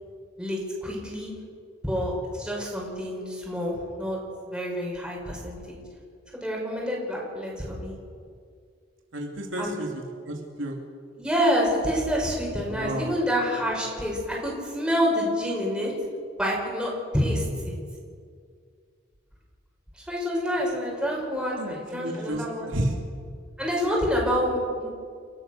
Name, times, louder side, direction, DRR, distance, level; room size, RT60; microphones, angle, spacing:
voice 1, 0.4-1.3 1.8-4.2 4.5-5.8 6.3-7.9 9.6-9.7 11.2-15.9 16.4-17.7 20.1-22.7 23.6-24.9, equal, 5° right, -3 dB, 5.9 m, -27 dB
voice 2, 9.1-10.8 12.7-13.1 21.5-22.9, right 1 dB, 75° right, 0 dB, 2.7 m, -32 dB
30.0 x 13.5 x 6.8 m, 2.2 s
head